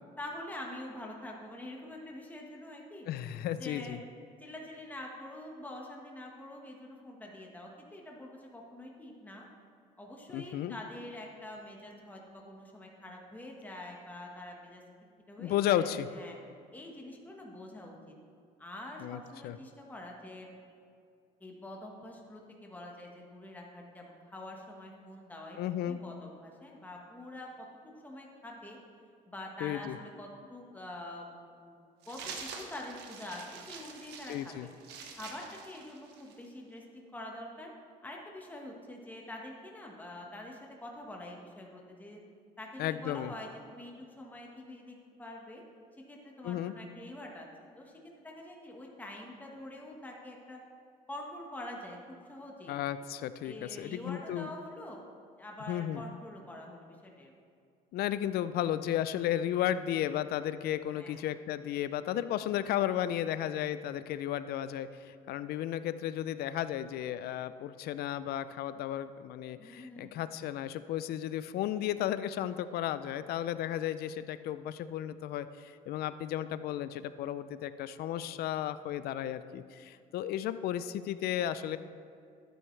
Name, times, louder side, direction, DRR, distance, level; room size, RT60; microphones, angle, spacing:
voice 1, 0.2-3.1 3.5-4.0 4.4-9.4 10.0-14.8 15.3-16.4 16.7-18.1 18.6-20.5 21.4-25.6 25.8-28.8 29.3-31.3 31.6-31.8 32.0-34.7 35.2-37.7 38.0-42.2 42.6-45.6 46.1-47.5 47.8-50.6 51.1-52.8 53.4-55.0 55.4-57.3 60.9-61.3 69.6-70.1, left 1 dB, 10° left, -1 dB, 1.3 m, -46 dB
voice 2, 3.1-4.0 10.3-10.8 15.4-16.1 19.0-19.6 25.6-26.0 29.6-30.0 34.3-34.7 42.8-43.3 46.4-46.7 52.7-54.5 55.7-56.0 57.9-81.8, left 11 dB, 65° left, 13 dB, 0.4 m, -34 dB
sound 1, 32.0-36.5, right 5 dB, 85° right, 1.2 m, -46 dB
12.0 x 9.2 x 3.3 m, 2.4 s
cardioid pair, 110°, 17 cm